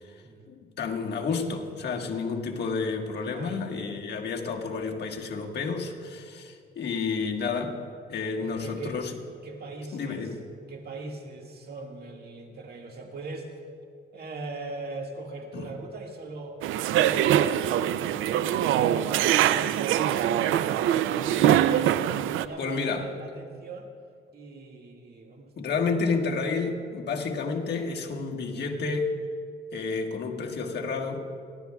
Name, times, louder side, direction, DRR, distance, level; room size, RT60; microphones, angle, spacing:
voice 1, 0.5-7.8 8.1-9.1 9.9-10.4 15.5-15.7 22.6-23.1 25.6-29.1 29.7-31.3, left 4 dB, 55° left, 1 dB, 1.5 m, -30 dB
voice 2, 3.2-3.6 8.4-9.0 9.4-10.3 10.7-13.6 14.1-23.9 24.3-26.0, right 3 dB, 50° right, 2 dB, 1.8 m, -40 dB
sound 1, 16.6-22.5, right 11 dB, 85° right, 0.4 m, -23 dB
30.0 x 12.0 x 2.3 m, 2.2 s
cardioid pair, 90°, 20 cm